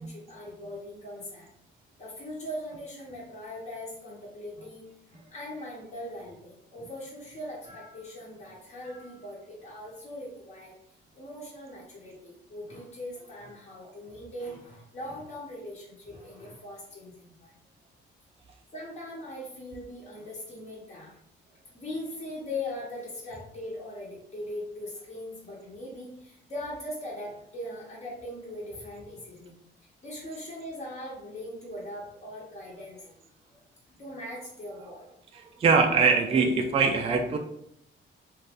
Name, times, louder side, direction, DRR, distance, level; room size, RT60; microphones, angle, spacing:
voice 1, 0.0-1.5 2.0-10.7 11.1-17.5 18.7-21.1 21.7-29.5 30.0-33.2 33.5-33.6 34.0-35.1, left 1 dB, 35° left, -7 dB, 1.0 m, -40 dB
voice 2, 35.4-37.4, right 5 dB, 30° right, 4 dB, 0.4 m, -23 dB
2.6 x 2.5 x 3.5 m, 0.73 s
cardioid pair, 90°, 20 cm